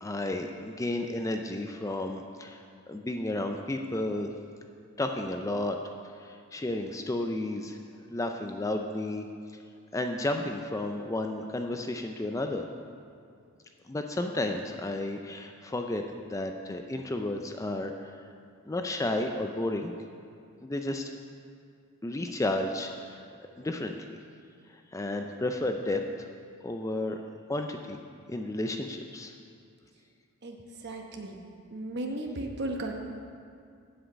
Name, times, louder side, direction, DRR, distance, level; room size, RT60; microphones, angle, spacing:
voice 1, 0.0-4.3 5.0-5.8 6.2-7.8 8.1-9.3 9.9-12.6 13.9-18.1 18.7-19.9 20.6-21.1 22.0-23.2 23.6-24.1 24.9-26.3 26.6-27.2 27.5-28.0 28.3-29.3, left 1 dB, 15° left, 4 dB, 0.4 m, -32 dB
voice 2, 30.8-31.4 31.7-32.9, right 1 dB, 50° right, 3 dB, 1.0 m, -35 dB
7.8 x 6.3 x 8.0 m, 2.3 s
head